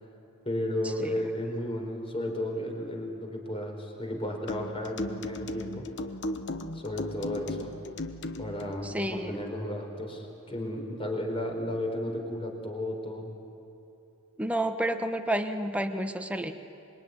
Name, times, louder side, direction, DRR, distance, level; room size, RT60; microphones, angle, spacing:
voice 1, 0.4-5.9 6.7-7.7 8.4-13.3, left 1 dB, 25° left, 2 dB, 4.3 m, -33 dB
sound 1, 4.5-8.7, left 1 dB, 55° left, 1.2 m, -36 dB
voice 2, 8.8-9.4 14.4-16.5, right 1 dB, 5° right, 6 dB, 1.3 m, -30 dB
26.0 x 23.0 x 9.8 m, 2.8 s
head